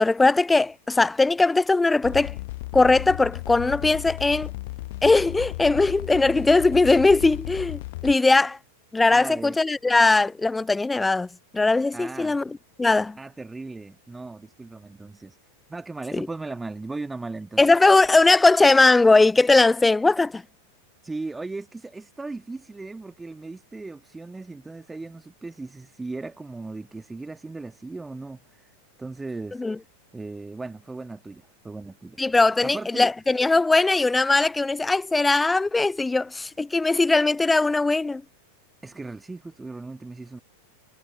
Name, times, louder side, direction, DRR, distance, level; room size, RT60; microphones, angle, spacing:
voice 1, 0.0-2.4 2.7-4.5 5.0-8.6 8.9-11.3 11.5-12.4 12.8-13.2 17.6-20.4 29.6-29.8 32.2-38.2, left 3 dB, 10° left, 0.3 m, -19 dB
sound 1, 2.0-8.2, left 20 dB, 50° left, 0.8 m, -34 dB
voice 2, 9.1-9.6 11.9-12.4 13.2-15.4 15.7-17.6 21.0-28.7 29.0-29.6 30.1-32.2 32.6-33.1 38.8-40.4, right 3 dB, 10° right, 1.5 m, -37 dB
figure-of-eight pair, 90°, 0 cm